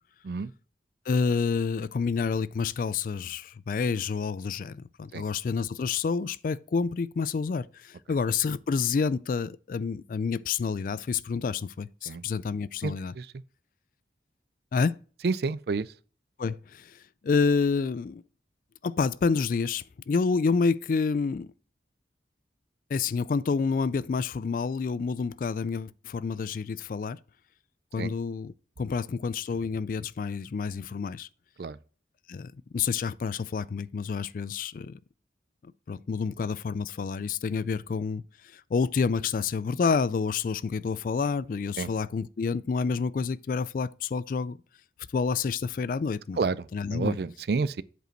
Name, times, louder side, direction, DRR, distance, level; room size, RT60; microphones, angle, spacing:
voice 1, 1.1-13.1 14.7-15.0 16.4-18.2 18.8-21.5 22.9-27.2 27.9-31.3 32.3-35.0 35.9-38.2 38.5-44.6 45.1-46.4 46.7-47.2, left 5 dB, 50° left, 0.3 m, -28 dB
voice 2, 12.8-13.3 15.2-15.9 28.0-28.1 31.6-31.8 41.8-41.9 46.4-46.6 46.9-47.8, right 4 dB, 60° right, 0.4 m, -29 dB
8.0 x 5.0 x 4.5 m
head